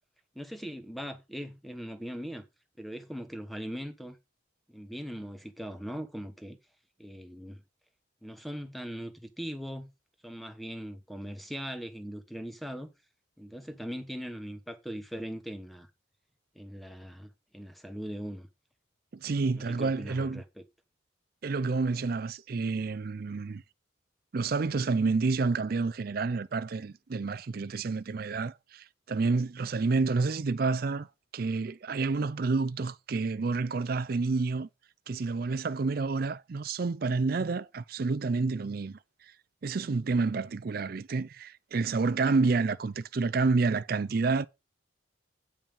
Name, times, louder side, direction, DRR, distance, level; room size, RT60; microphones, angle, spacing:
voice 1, 0.3-2.4 2.8-4.2 4.7-6.6 7.0-7.6 8.2-9.9 10.2-12.9 13.4-15.9 16.5-18.5 19.5-20.7, equal, ahead, 1.1 m, -40 dB
voice 2, 19.1-20.4 21.4-23.6 24.3-31.1 31.3-34.7 35.1-39.0 39.6-44.5, right 4 dB, 50° right, 0.4 m, -29 dB
8.8 x 5.5 x 5.4 m
head